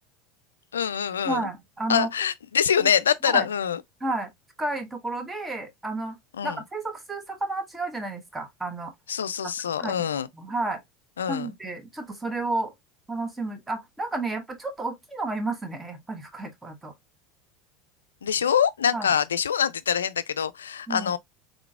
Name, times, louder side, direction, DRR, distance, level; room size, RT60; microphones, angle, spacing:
voice 1, 0.7-1.5 1.9-3.8 6.4-6.6 9.1-10.3 11.2-11.5 18.2-21.2, left 8 dB, 85° left, 0.3 m, -25 dB
voice 2, 1.2-2.1 2.8-2.9 3.2-3.5 4.0-4.3 4.6-6.2 6.4-8.9 9.4-9.5 9.8-10.1 10.3-10.8 11.3-12.7 13.1-16.9 18.9-19.1 20.9-21.1, right 2 dB, 15° right, 1.2 m, -31 dB
3.8 x 3.5 x 2.3 m
hypercardioid pair, 80°, 0 cm